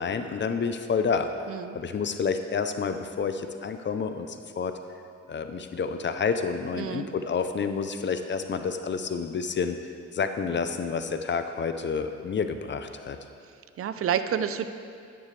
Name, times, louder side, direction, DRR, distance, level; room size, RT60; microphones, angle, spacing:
voice 1, 0.0-1.3 1.7-4.8 5.3-9.8 10.1-13.2, left 5 dB, 40° left, 8 dB, 0.6 m, -29 dB
voice 2, 6.8-7.1 13.8-14.7, right 8 dB, 50° right, 10 dB, 0.6 m, -29 dB
10.5 x 9.3 x 3.3 m, 2.3 s
cardioid pair, 90°, 30 cm